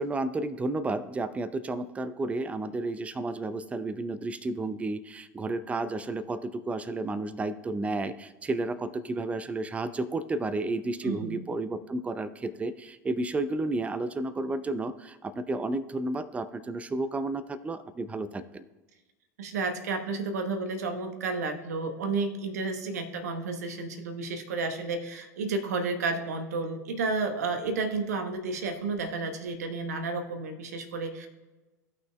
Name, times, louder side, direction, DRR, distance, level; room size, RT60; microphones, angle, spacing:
voice 1, 0.0-18.6, right 2 dB, 15° right, 14 dB, 0.5 m, -32 dB
voice 2, 11.0-11.4 19.4-31.3, right 3 dB, 70° right, 7 dB, 1.1 m, -31 dB
16.0 x 5.9 x 2.3 m, 1.2 s
figure-of-eight pair, 80°, 9 cm